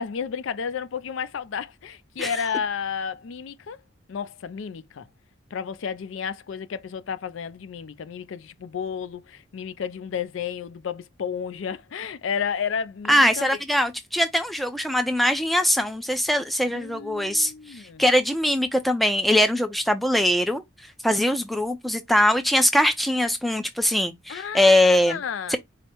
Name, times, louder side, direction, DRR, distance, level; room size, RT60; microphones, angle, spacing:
voice 1, 0.0-3.8 4.1-5.1 5.5-13.5 16.7-18.0 24.3-25.6, left 7 dB, 75° left, 0.4 m, -32 dB
voice 2, 13.1-20.6 21.0-25.2 25.5-25.6, left 1 dB, ahead, 0.4 m, -22 dB
4.9 x 2.0 x 4.3 m
head